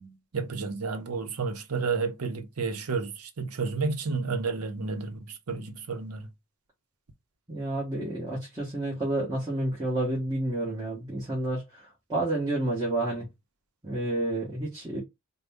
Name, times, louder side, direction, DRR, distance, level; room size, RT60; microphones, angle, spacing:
voice 1, 0.3-6.3, right 4 dB, 85° right, 0.8 m, -31 dB
voice 2, 7.5-11.6 12.1-13.3 13.8-15.0, right 1 dB, 20° right, 1.3 m, -29 dB
3.8 x 2.2 x 3.5 m
head